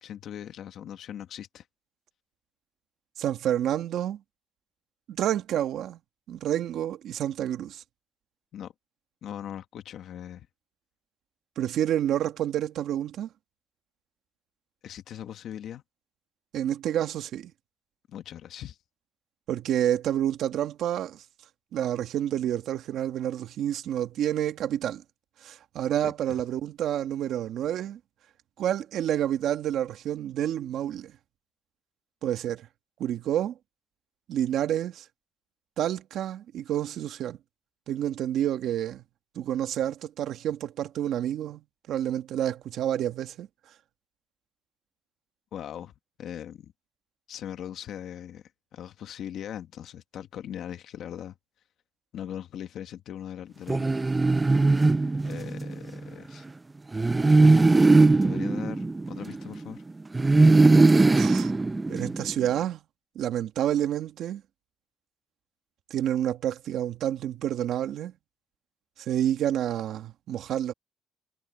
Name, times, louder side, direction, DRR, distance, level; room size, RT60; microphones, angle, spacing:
voice 1, 0.0-1.7 8.5-8.7 9.2-10.5 14.8-15.8 18.1-18.8 26.0-26.4 45.5-45.9 46.2-46.7 47.3-48.4 48.7-51.4 52.1-54.0 55.2-56.4 58.2-59.8, left 10 dB, 70° left, 1.5 m, -40 dB
voice 2, 3.2-4.2 5.1-6.0 6.3-7.8 11.6-13.3 16.5-17.5 19.5-21.2 21.7-25.0 25.4-28.0 28.6-31.1 32.2-32.7 33.0-33.5 34.3-35.0 35.8-37.4 37.9-39.0 39.4-43.5 61.2-61.5 61.9-62.8 63.2-64.4 65.9-68.1 69.0-70.7, right 11 dB, 75° right, 1.8 m, -29 dB
sound 1, 53.7-55.8 56.9-59.6 60.1-62.4, right 3 dB, 20° right, 0.5 m, -20 dB
cardioid pair, 105°, 0 cm